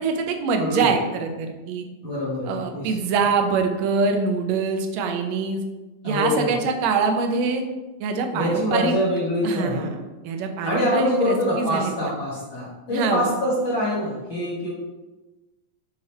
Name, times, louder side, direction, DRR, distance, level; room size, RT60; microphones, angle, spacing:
voice 1, 0.0-1.9 2.5-5.6 6.0-7.6 8.0-9.0 9.4-10.0 10.2-11.9 12.9-13.3, right 4 dB, 75° right, 4 dB, 1.8 m, -24 dB
voice 2, 0.6-0.9 2.0-3.0 6.0-6.6 8.3-9.9 10.6-14.7, left 1 dB, 50° left, -7 dB, 1.6 m, -25 dB
8.7 x 3.1 x 4.2 m, 1.1 s
omnidirectional pair, 3.5 m